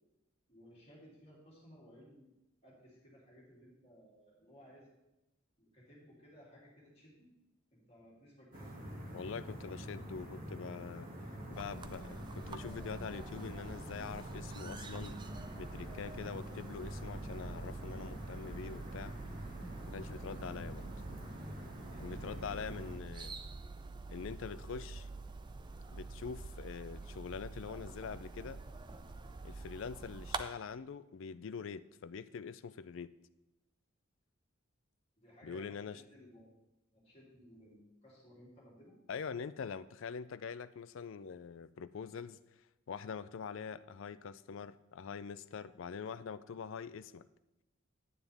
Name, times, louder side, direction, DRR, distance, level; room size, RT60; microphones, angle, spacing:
voice 1, 0.5-2.3 2.6-4.9 5.6-7.3 7.7-9.0 21.9-22.7 25.8-26.0 35.2-36.5 36.9-39.0, equal, 30° left, -5 dB, 3.0 m, -59 dB
sound 1, 8.5-22.9, equal, 40° right, 2.0 m, -46 dB
voice 2, 9.1-11.1 11.5-15.2 15.6-19.1 19.9-20.8 22.0-23.3 24.1-25.1 25.9-28.6 29.4-33.1 35.4-36.0 39.1-42.4 42.9-47.3, left 6 dB, 65° left, 15 dB, 0.4 m, -44 dB
sound 2, 11.5-30.4, right 3 dB, 20° right, 0.4 m, -47 dB
9.5 x 9.2 x 3.5 m, 0.95 s
head